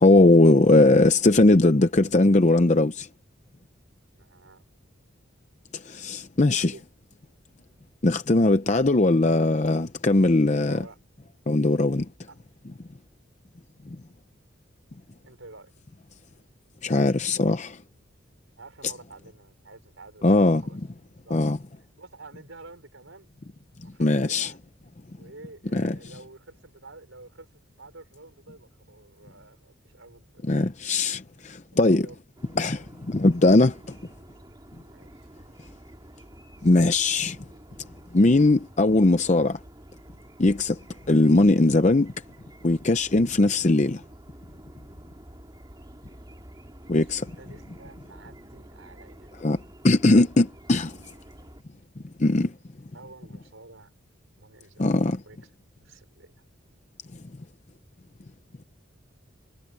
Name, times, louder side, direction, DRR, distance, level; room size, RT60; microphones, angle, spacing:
voice 1, 0.0-3.1 5.7-6.7 8.0-10.8 11.5-12.1 16.8-17.8 20.2-20.6 21.3-21.6 24.0-24.5 25.7-26.0 30.5-32.1 32.6-34.0 36.6-37.4 38.1-39.6 40.4-40.8 41.1-42.1 42.6-44.0 46.9-47.3 49.4-49.6 49.8-51.0 52.2-52.5 54.8-55.2, left 2 dB, 35° left, 0.6 m, -20 dB
voice 2, 4.2-4.6 6.7-6.8 10.7-11.0 12.3-12.4 15.2-15.7 18.6-20.8 21.2-21.6 22.0-23.3 23.8-24.6 25.2-30.5 31.7-32.2 33.1-33.3 34.9-35.3 47.1-49.3 52.9-53.9 54.4-55.4 55.8-56.4, right 3 dB, 85° right, 4.7 m, -49 dB
sound 1, 32.4-51.6, right 1 dB, 20° right, 2.5 m, -49 dB
head